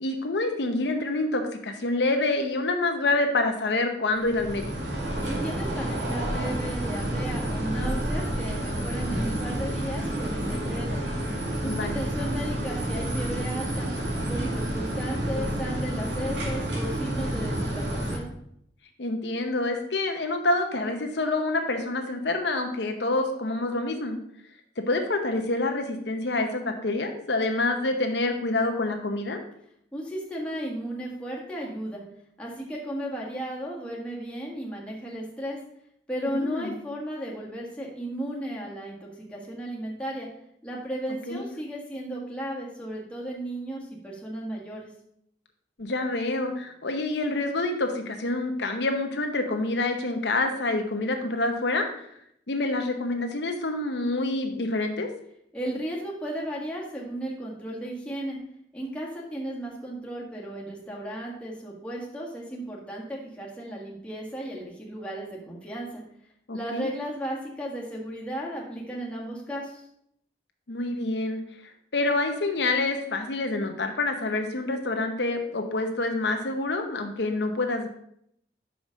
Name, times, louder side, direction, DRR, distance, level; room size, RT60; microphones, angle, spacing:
voice 1, 0.0-4.7 11.6-12.0 19.0-24.2 24.8-29.4 36.3-36.7 41.3-41.4 45.8-52.1 52.5-55.1 66.5-66.9 70.7-71.4 71.9-77.9, left 2 dB, 75° left, 4 dB, 0.9 m, -27 dB
sound 1, 4.2-18.2, right 1 dB, 80° right, 2.0 m, -29 dB
voice 2, 5.2-11.0 11.6-13.9 14.2-18.3 29.9-32.0 32.4-35.6 36.1-40.3 40.6-44.9 55.5-58.4 58.7-66.0 66.5-69.9, right 1 dB, 5° left, -4 dB, 1.6 m, -35 dB
6.0 x 5.1 x 6.3 m, 0.72 s
head